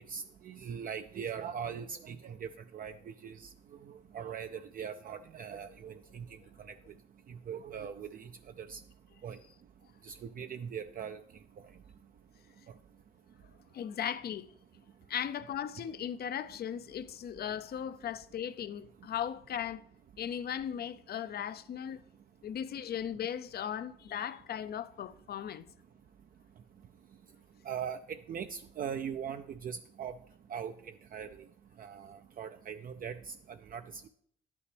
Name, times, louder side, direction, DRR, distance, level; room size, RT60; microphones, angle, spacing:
voice 1, 0.1-2.5 2.7-2.9 3.2-3.5 3.9-6.2 7.5-8.3 8.6-8.8 9.2-9.4 10.0-11.2 27.7-28.0 28.3-30.1 30.5-30.7 31.1-31.3 31.8-33.3 33.7-33.8, right 7 dB, 45° right, 0.4 m, -40 dB
voice 2, 13.7-14.5 15.1-19.8 20.2-22.0 22.4-25.7, left 9 dB, 55° left, 0.5 m, -37 dB
10.5 x 8.4 x 3.3 m
cardioid pair, 90°, 20 cm